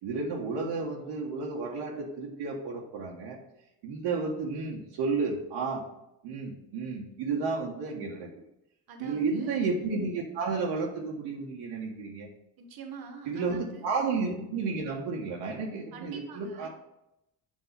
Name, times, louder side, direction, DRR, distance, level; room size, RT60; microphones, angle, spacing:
voice 1, 0.0-3.4 3.8-5.8 6.2-8.3 9.0-12.3 13.3-16.7, right 4 dB, 70° right, -2 dB, 1.1 m, -32 dB
voice 2, 8.9-9.6 12.6-13.9 15.9-16.7, right 5 dB, 55° right, 4 dB, 1.3 m, -45 dB
7.2 x 2.7 x 5.7 m, 0.86 s
hypercardioid pair, 60°, 44 cm